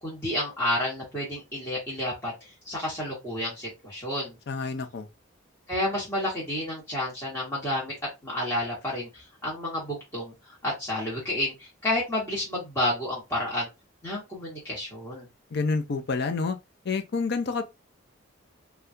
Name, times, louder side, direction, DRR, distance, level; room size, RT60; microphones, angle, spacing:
voice 1, 0.0-4.4 5.7-7.9 8.2-13.7 14.0-15.3, left 1 dB, 10° left, 1.1 m, -30 dB
voice 2, 4.5-5.1 15.5-16.6 16.8-17.6, left 4 dB, 55° left, 0.5 m, -28 dB
3.5 x 2.3 x 2.6 m
head